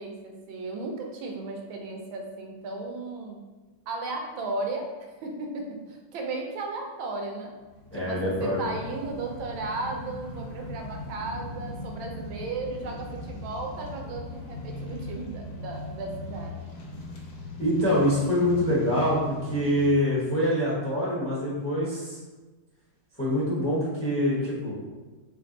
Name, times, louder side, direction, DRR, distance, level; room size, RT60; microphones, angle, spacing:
voice 1, 0.0-3.4 3.9-4.9 5.2-7.5 8.0-16.6, right 3 dB, 90° right, 2 dB, 1.4 m, -35 dB
sound 1, 7.6-19.9, left 1 dB, 75° left, 0.7 m, -39 dB
voice 2, 7.9-8.6 17.6-22.2 23.2-24.8, equal, 15° left, -8 dB, 0.6 m, -25 dB
3.4 x 2.5 x 3.7 m, 1.2 s
omnidirectional pair, 2.1 m